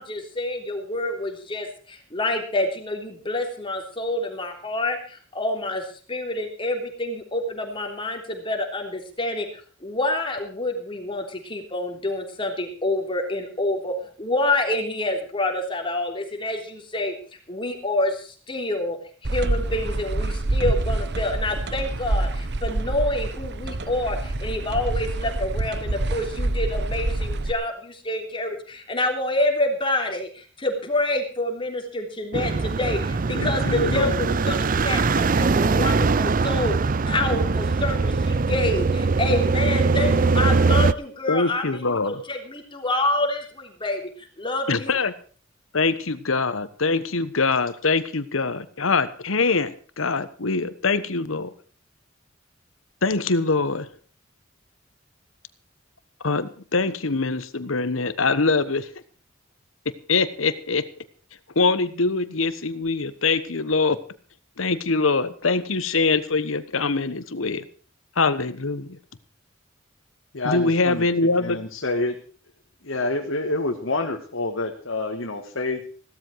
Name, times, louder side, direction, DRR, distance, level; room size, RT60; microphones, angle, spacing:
voice 1, 0.0-17.1 17.5-19.0 19.2-45.0, left 1 dB, 25° left, 3 dB, 3.4 m, -27 dB
sound 1, 19.2-27.5, right 2 dB, 60° right, 1.0 m, -26 dB
sound 2, 32.3-40.9, right 4 dB, 45° right, 0.6 m, -21 dB
voice 2, 33.3-34.1 41.3-42.2 44.7-45.1 45.7-51.5 53.0-53.9 56.2-58.9 60.1-60.9 61.5-64.0 64.6-67.6 68.2-69.0 70.4-71.6, left 3 dB, 90° left, 14 dB, 1.3 m, -23 dB
voice 3, 70.3-71.1 71.4-72.2 72.8-75.9, left 2 dB, 75° left, 3 dB, 1.8 m, -27 dB
16.5 x 13.0 x 4.7 m, 0.42 s
head